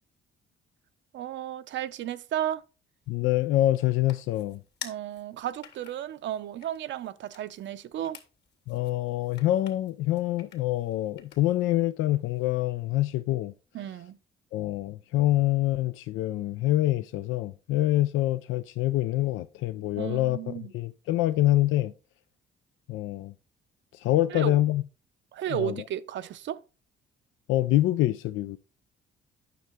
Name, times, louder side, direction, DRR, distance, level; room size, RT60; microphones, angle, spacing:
voice 1, 1.1-2.6 4.8-8.2 13.7-14.2 20.0-20.7 24.3-24.6 25.3-26.6, right 11 dB, 70° right, 0.6 m, -33 dB
sound 1, 3.0-11.7, left 8 dB, 60° left, 2.5 m, -50 dB
voice 2, 3.1-4.6 8.7-13.5 14.5-21.9 22.9-23.3 23.9-24.8 25.5-25.8 27.5-28.6, left 15 dB, 90° left, 0.4 m, -26 dB
9.3 x 6.4 x 3.5 m
cardioid pair, 90°, 20 cm